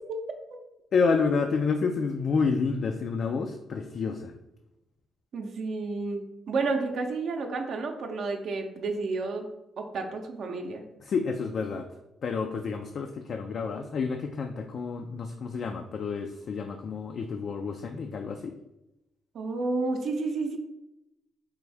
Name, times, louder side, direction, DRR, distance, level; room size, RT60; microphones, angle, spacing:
voice 1, 0.9-4.3 11.0-11.9 12.2-18.6, left 5 dB, 55° left, 5 dB, 0.3 m, -29 dB
voice 2, 5.3-9.5 9.8-10.8 19.3-20.6, right 3 dB, 65° right, 3 dB, 0.6 m, -31 dB
4.7 x 2.6 x 3.3 m, 0.92 s
cardioid pair, 90°, 0 cm